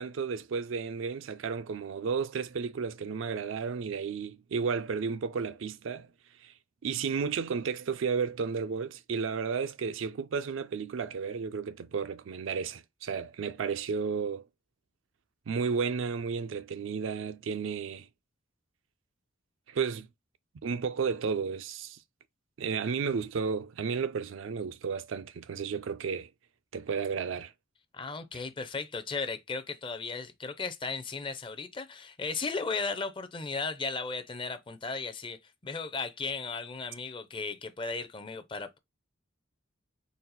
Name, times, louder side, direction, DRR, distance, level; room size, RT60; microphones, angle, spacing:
voice 1, 0.0-6.1 6.4-6.5 6.8-14.4 15.5-18.1 19.7-20.1 20.6-22.0 22.6-26.3 26.7-27.5, right 5 dB, 75° right, 0.4 m, -33 dB
voice 2, 27.9-38.8, left 4 dB, 25° left, 0.5 m, -36 dB
4.0 x 2.3 x 4.0 m
head